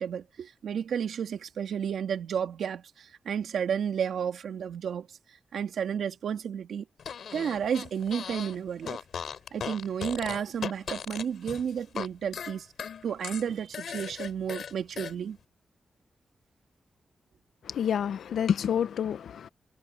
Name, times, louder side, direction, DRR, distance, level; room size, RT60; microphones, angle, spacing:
voice 1, 0.0-5.1 5.5-6.8 7.3-9.0 9.5-12.7 13.0-15.4, right 8 dB, 85° right, 2.8 m, -32 dB
Fart, 7.0-8.6 8.8-12.1 12.3-15.1, left 7 dB, 70° left, 3.2 m, -37 dB
voice 2, 17.7-19.5, left 8 dB, 85° left, 0.7 m, -28 dB
wide cardioid pair, 175°, 0 cm